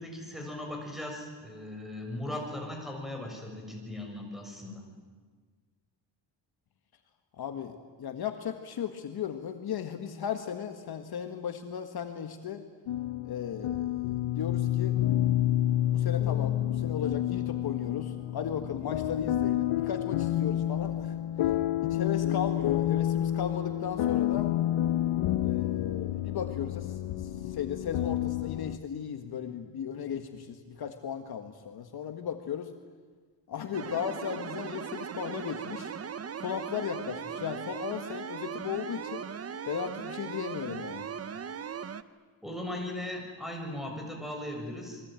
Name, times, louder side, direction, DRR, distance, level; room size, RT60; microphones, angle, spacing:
voice 1, 0.0-4.8 42.4-45.0, left 1 dB, ahead, 1 dB, 6.6 m, -38 dB
voice 2, 7.4-12.6 13.2-15.0 15.9-21.2 21.8-24.5 25.4-32.7 33.5-35.9 36.4-39.3 39.6-41.1, left 8 dB, 55° left, 6 dB, 1.8 m, -36 dB
sound 1, 12.9-28.8, left 12 dB, 90° left, 1.1 m, -29 dB
sound 2, 33.7-42.0, right 7 dB, 30° right, 0.9 m, -38 dB
29.0 x 22.5 x 9.1 m, 1.5 s
cardioid pair, 150°, 46 cm